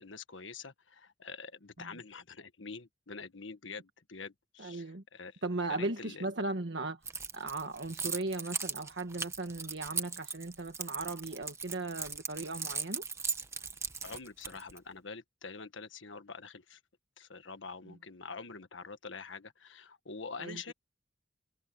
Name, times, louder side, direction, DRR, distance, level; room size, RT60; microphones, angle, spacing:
voice 1, 0.0-5.4 5.7-6.3 8.0-8.2 14.0-16.8 17.2-20.7, left 4 dB, 90° left, 1.5 m, -46 dB
voice 2, 4.6-5.0 5.4-7.0 7.3-13.0 20.4-20.6, right 2 dB, 70° right, 1.5 m, -37 dB
Keys jangling, 7.1-14.8, right 5 dB, 15° right, 1.2 m, -38 dB
head